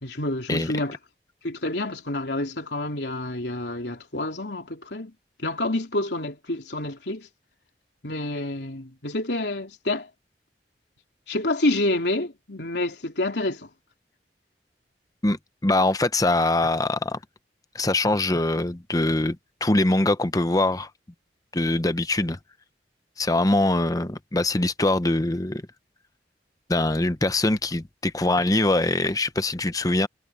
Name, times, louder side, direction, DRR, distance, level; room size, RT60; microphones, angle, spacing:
voice 1, 0.0-1.0 1.4-5.1 5.4-7.3 8.0-10.1 11.3-13.7, left 2 dB, 75° left, 3.3 m, -28 dB
voice 2, 15.2-17.2 17.7-19.4 19.6-20.9 21.5-22.4 23.2-25.6 26.7-30.1, left 2 dB, 20° left, 0.8 m, -23 dB
head